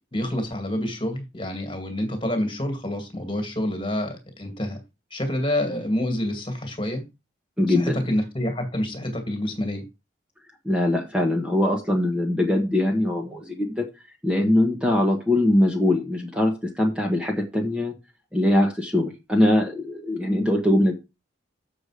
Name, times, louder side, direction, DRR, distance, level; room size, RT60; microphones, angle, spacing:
voice 1, 0.1-4.8 5.1-7.0 7.7-9.8, left 1 dB, 25° left, 2.2 m, -27 dB
voice 2, 7.6-8.0 10.6-13.8 14.2-17.9 18.3-20.9, left 1 dB, 5° right, 1.4 m, -22 dB
7.3 x 6.8 x 5.0 m
head